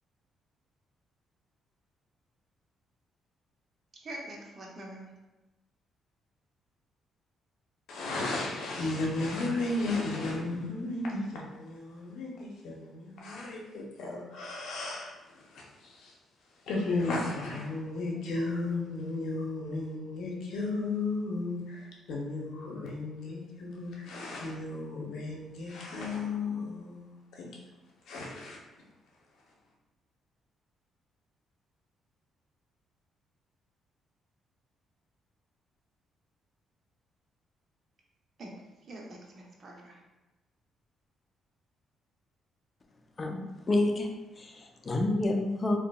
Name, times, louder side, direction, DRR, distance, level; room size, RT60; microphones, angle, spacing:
voice 1, 3.9-5.1 38.4-38.5 38.9-40.0, right 1 dB, 45° right, -1 dB, 0.7 m, -44 dB
voice 2, 7.9-16.1 16.7-27.5 28.1-28.6, left 2 dB, 80° left, -2 dB, 0.7 m, -34 dB
voice 3, 43.2-44.1 44.4-45.8, left 2 dB, 35° left, 3 dB, 0.5 m, -29 dB
3.8 x 2.7 x 2.2 m, 1.0 s
cardioid pair, 90°, 0 cm